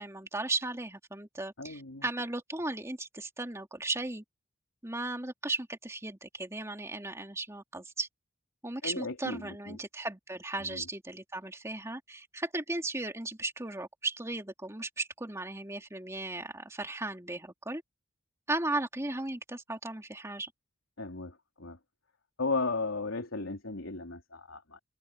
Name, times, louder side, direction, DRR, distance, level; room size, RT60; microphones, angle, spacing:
voice 1, 0.0-4.2 4.8-8.1 8.6-17.8 18.5-20.5, right 2 dB, 15° right, 2.8 m, -36 dB
voice 2, 1.6-2.1 8.8-9.8 10.6-10.8 21.0-21.8 22.4-24.8, left 3 dB, 85° left, 3.5 m, -35 dB
head